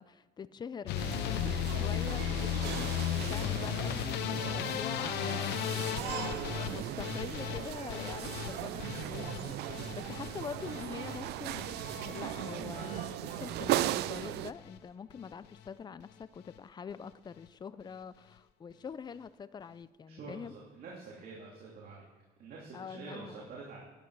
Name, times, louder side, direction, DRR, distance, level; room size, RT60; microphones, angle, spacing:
voice 1, 0.0-2.9 3.3-20.5 22.7-23.4, left 6 dB, 25° left, 16 dB, 0.4 m, -45 dB
sound 1, 0.9-13.0 13.3-13.9 14.2-14.8 15.1-15.3 15.7-15.8 16.0-16.1, left 12 dB, 85° left, 0.6 m, -36 dB
sound 2, 0.9-14.5, right 14 dB, 80° right, 0.4 m, -37 dB
sound 3, 5.7-13.9, left 6 dB, 45° left, 1.0 m, -53 dB
voice 2, 20.1-22.1 22.4-23.8, right 3 dB, 60° right, -4 dB, 2.7 m, -47 dB
12.0 x 9.5 x 4.7 m, 1.3 s
cardioid pair, 110°, 17 cm